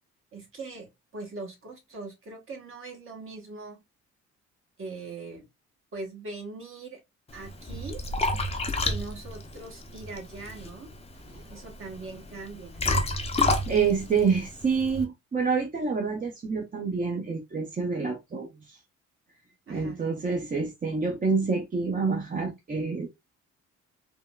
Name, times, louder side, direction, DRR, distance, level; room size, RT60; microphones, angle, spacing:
voice 1, 0.3-3.8 4.8-5.5 5.9-7.0 7.3-8.0 8.8-10.9 11.5-12.8 19.7-20.0, right 3 dB, 45° right, 1.1 m, -41 dB
Liquid, 7.3-15.0, left 2 dB, 20° left, 0.6 m, -30 dB
voice 2, 13.4-18.8 19.7-23.1, right 5 dB, 30° right, 0.6 m, -27 dB
3.5 x 2.1 x 2.2 m
cardioid pair, 90°, 30 cm